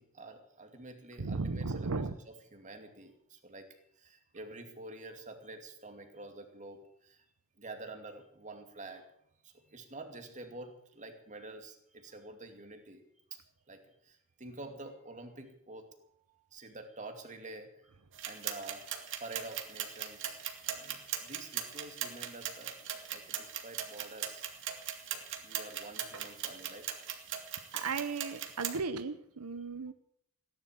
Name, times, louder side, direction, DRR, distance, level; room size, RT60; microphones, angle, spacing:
voice 1, 0.0-7.2 7.6-9.0 9.4-13.0 13.3-13.4 13.7-17.9 18.2-20.4 20.7-22.8 23.1-26.9 27.2-27.9 29.9-30.0, right 2 dB, 35° right, 5 dB, 2.4 m, -48 dB
voice 2, 1.2-2.2 27.7-29.9, right 4 dB, 80° right, 11 dB, 0.9 m, -35 dB
sound 1, 18.1-28.8, right 9 dB, 60° right, 2.2 m, -40 dB
17.0 x 11.0 x 7.4 m, 0.71 s
head